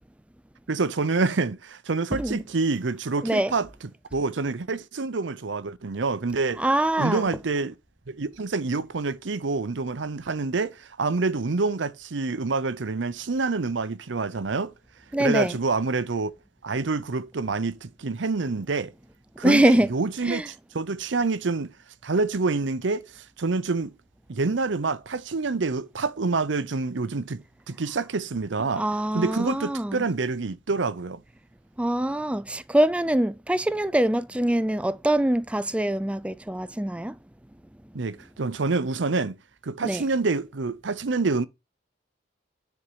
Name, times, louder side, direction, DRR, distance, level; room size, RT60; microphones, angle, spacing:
voice 1, 0.7-3.7 4.1-6.6 7.0-7.7 8.1-14.7 15.2-16.3 16.6-18.9 19.4-21.7 22.0-23.9 24.3-28.9 29.1-31.2 37.9-39.4 39.6-41.5, right 3 dB, 75° right, 0.7 m, -27 dB
voice 2, 6.6-7.2 15.1-15.6 19.4-19.9 20.3-20.4 28.8-30.0 31.8-37.1 39.8-40.0, right 1 dB, 5° right, 0.4 m, -23 dB
9.8 x 4.5 x 5.6 m
head